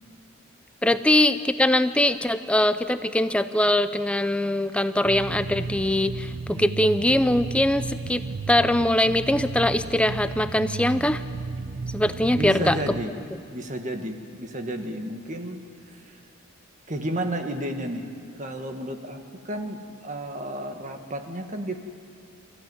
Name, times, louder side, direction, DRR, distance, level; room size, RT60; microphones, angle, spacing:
voice 1, 0.8-11.2 11.9-12.8, left 1 dB, 5° left, 11 dB, 0.5 m, -22 dB
sound 1, 5.0-13.0, right 4 dB, 60° right, 0.6 m, -34 dB
voice 2, 12.3-13.1 13.5-15.6 15.9-16.2 16.9-18.1 18.4-21.8, right 1 dB, 35° right, 5 dB, 1.7 m, -32 dB
27.5 x 15.5 x 9.5 m, 2.6 s
head